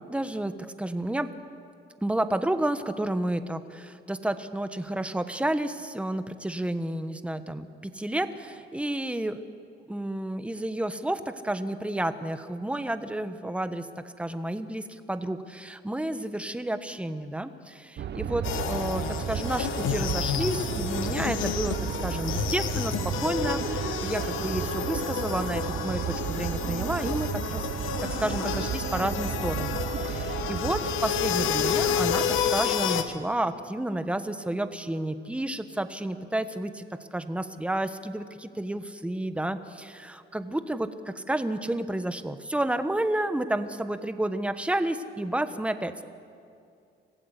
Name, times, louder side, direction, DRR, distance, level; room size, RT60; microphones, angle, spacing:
voice 1, 0.1-1.3 2.0-9.4 9.9-46.0, right 1 dB, 5° right, 10 dB, 1.2 m, -31 dB
sound 1, 18.0-32.6, right 8 dB, 60° right, 1.1 m, -33 dB
sound 2, 18.4-33.0, left 9 dB, 90° left, 1.3 m, -30 dB
25.5 x 15.5 x 8.2 m, 2.4 s
cardioid pair, 90°, 20 cm